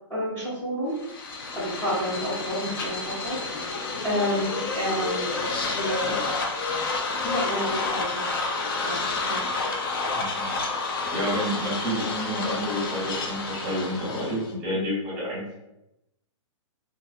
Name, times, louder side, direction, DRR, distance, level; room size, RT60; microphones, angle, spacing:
voice 1, 0.1-0.9 1.5-3.4 4.0-5.3 5.7-6.2 7.2-8.5 8.8-9.4, equal, 10° left, -12 dB, 0.7 m, -29 dB
sound 1, 1.0-14.5, left 3 dB, 45° left, 0.4 m, -30 dB
voice 2, 10.2-10.5 11.1-15.5, equal, 25° right, -6 dB, 1.0 m, -29 dB
2.2 x 2.2 x 2.4 m, 0.88 s
hypercardioid pair, 165°, 16 cm